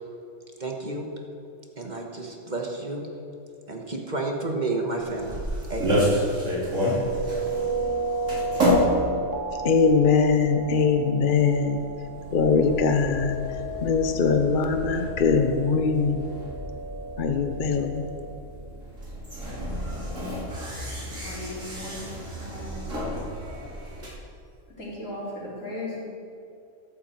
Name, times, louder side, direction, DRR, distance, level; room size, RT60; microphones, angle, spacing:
voice 1, 0.6-1.1 1.8-3.0 3.7-6.1, right 2 dB, 35° right, 1 dB, 1.6 m, -31 dB
sound 1, 5.0-24.1, equal, 85° right, 3.7 m, -30 dB
sound 2, 6.9-18.3, right 2 dB, 15° right, 1.1 m, -34 dB
voice 2, 9.6-11.8 12.3-13.4 13.8-16.3 17.2-18.0, left 5 dB, 45° left, 6 dB, 0.9 m, -22 dB
voice 3, 21.1-22.0 22.4-23.1 24.8-26.0, left 1 dB, 90° left, -6 dB, 4.2 m, -37 dB
14.0 x 13.0 x 4.6 m, 2.5 s
omnidirectional pair, 1.3 m